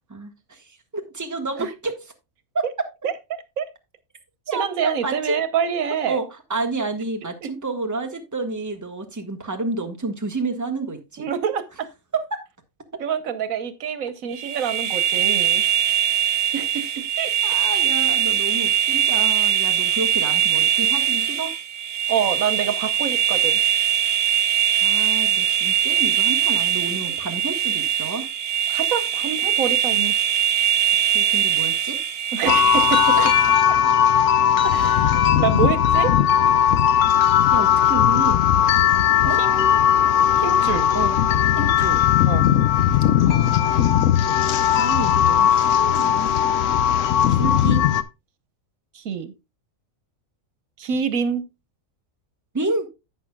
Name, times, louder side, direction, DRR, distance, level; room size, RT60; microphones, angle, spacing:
voice 1, 0.0-2.1 2.5-2.9 4.5-5.4 6.1-11.3 12.1-12.4 12.9-13.0 17.4-21.5 24.8-28.2 31.1-32.0 33.2-33.3 37.5-38.4 39.2-39.4 40.9-41.2 41.5-42.0 43.3-44.0 44.7-46.3 47.3-47.8 52.5-52.9, right 3 dB, 15° right, 1.2 m, -29 dB
voice 2, 3.0-3.7 4.5-6.2 7.4-7.5 11.2-11.9 13.0-15.6 16.5-17.3 22.1-23.6 28.7-30.2 32.3-33.2 33.7-33.8 34.7-34.9 35.2-36.1 39.4-39.8 40.4-40.9 42.2-42.5 48.9-49.3 50.8-51.4, right 7 dB, 90° right, 1.4 m, -26 dB
sound 1, 14.3-33.6, right 10 dB, 50° right, 1.1 m, -21 dB
sound 2, 32.5-48.0, left 10 dB, 70° left, 1.0 m, -18 dB
11.0 x 8.5 x 2.3 m
omnidirectional pair, 1.4 m